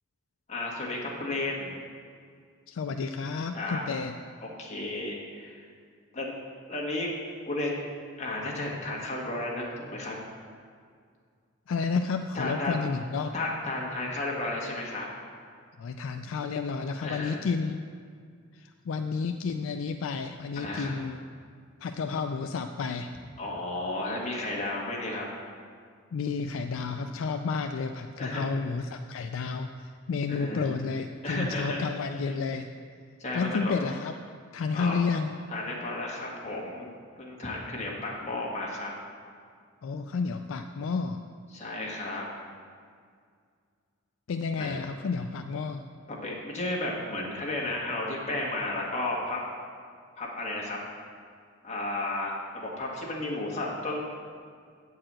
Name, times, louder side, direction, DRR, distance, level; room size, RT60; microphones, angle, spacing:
voice 1, 0.5-1.8 3.5-3.8 4.4-5.6 6.1-6.3 6.7-7.1 7.5-7.7 8.2-10.1 12.3-12.8 13.3-15.1 17.0-17.4 20.6-20.9 23.4-25.2 28.2-28.5 30.3-30.7 31.2-31.8 33.2-33.8 34.7-35.0 35.5-38.9 41.5-42.2 44.6-44.8 46.1-49.4 50.2-50.8 51.6-54.0, left 2 dB, 35° left, -3 dB, 1.7 m, -33 dB
voice 2, 2.7-4.1 11.7-13.3 15.8-17.8 18.5-21.2 21.8-23.1 26.1-32.7 33.3-34.2 34.5-35.3 39.8-41.2 44.3-45.8, left 4 dB, 65° left, 6 dB, 0.4 m, -31 dB
8.8 x 4.7 x 7.5 m, 2.1 s
head